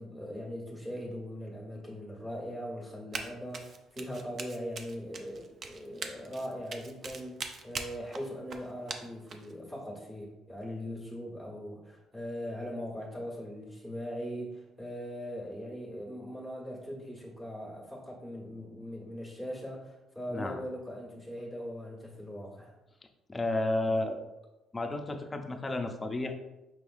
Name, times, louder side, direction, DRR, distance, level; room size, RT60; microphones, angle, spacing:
voice 1, 0.0-22.8, equal, 15° right, -5 dB, 1.5 m, -40 dB
Run, 3.1-3.3 3.5-9.5, right 4 dB, 45° right, 0.5 m, -41 dB
voice 2, 23.3-24.2 24.7-26.3, left 2 dB, 20° left, 5 dB, 0.5 m, -32 dB
5.6 x 3.3 x 2.6 m, 0.97 s
cardioid pair, 105°, 0 cm